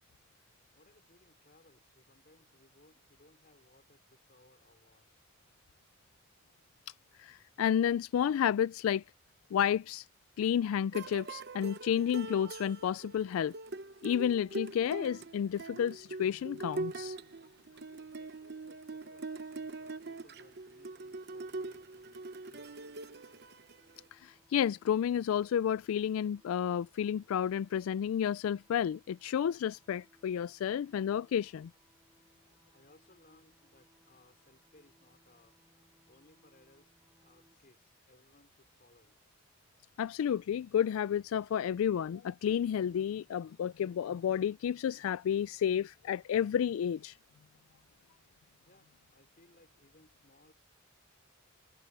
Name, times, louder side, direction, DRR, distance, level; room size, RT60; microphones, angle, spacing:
voice 1, 0.7-5.2 17.7-22.8 32.7-36.9 37.2-39.2 48.6-50.5, left 2 dB, 45° left, 4.7 m, -65 dB
voice 2, 7.2-9.0 9.5-10.1 10.4-13.5 14.0-17.2 24.1-31.7 40.0-47.2, left 9 dB, 90° left, 0.3 m, -31 dB
sound 1, 10.9-24.1, right 3 dB, 50° right, 0.9 m, -43 dB
sound 2, 19.0-37.6, equal, 10° right, 5.0 m, -71 dB
head